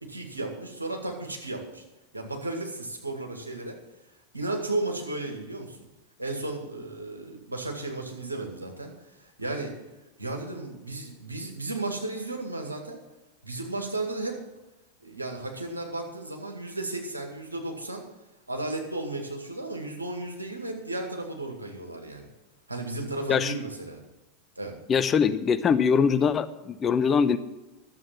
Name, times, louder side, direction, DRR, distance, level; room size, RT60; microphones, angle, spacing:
voice 1, 0.0-1.8 2.1-3.8 4.3-5.8 6.2-9.7 10.2-13.0 13.4-14.4 15.0-18.0 18.5-22.3 22.7-24.0 24.6-24.8, right 2 dB, 90° right, 2 dB, 2.1 m, -34 dB
voice 2, 24.9-27.4, left 6 dB, 25° left, 11 dB, 0.8 m, -22 dB
12.0 x 7.7 x 7.4 m, 1.0 s
figure-of-eight pair, 85°, 0 cm